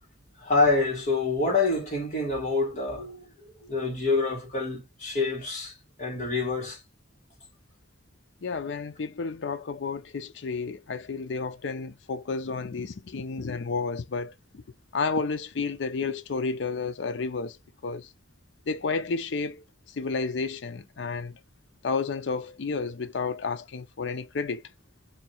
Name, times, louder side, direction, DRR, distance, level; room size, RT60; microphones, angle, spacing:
voice 1, 0.4-3.2 3.7-5.7 6.0-6.8, left 3 dB, 40° left, 1.7 m, -26 dB
voice 2, 8.4-14.6 14.9-17.6 17.8-18.1 18.7-19.6 20.0-21.3 21.8-24.6, left 4 dB, 80° left, 0.5 m, -31 dB
2.9 x 2.7 x 4.3 m
head